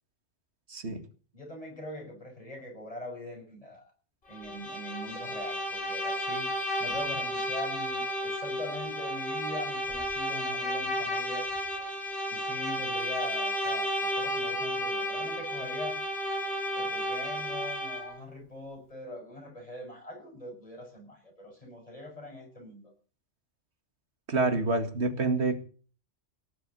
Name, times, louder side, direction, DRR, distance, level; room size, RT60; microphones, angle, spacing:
voice 1, 0.7-1.0 24.3-25.6, right 3 dB, 60° right, 7 dB, 2.3 m, -27 dB
voice 2, 1.3-3.9 4.3-6.5 6.8-11.5 12.3-16.0 16.7-22.9, left 1 dB, 30° left, 2 dB, 6.2 m, -42 dB
Bowed string instrument, 4.3-18.2, equal, 55° left, 3.2 m, -32 dB
18.0 x 7.0 x 8.1 m, 0.41 s
omnidirectional pair, 1.2 m